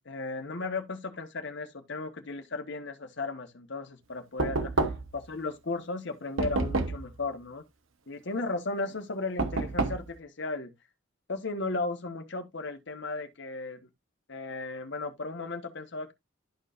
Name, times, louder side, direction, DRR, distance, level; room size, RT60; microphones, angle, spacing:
voice 1, 0.0-7.6 8.1-10.7 11.3-13.9 14.3-16.1, left 3 dB, 60° left, 1.2 m, -35 dB
Knock, 4.4-5.3 6.4-7.1 9.4-10.1, right 3 dB, 85° right, 1.0 m, -29 dB
12.5 x 4.5 x 2.5 m
head